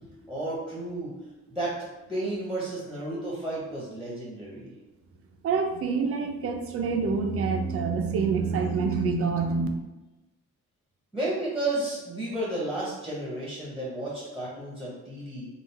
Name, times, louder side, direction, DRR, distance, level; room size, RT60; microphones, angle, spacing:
voice 1, 0.0-1.8 2.1-4.7 11.1-15.5, right 1 dB, ahead, -6 dB, 0.8 m, -32 dB
voice 2, 5.4-9.7, right 5 dB, 50° right, 4 dB, 0.5 m, -26 dB
3.8 x 2.4 x 4.0 m, 1.1 s
cardioid pair, 165°, 30 cm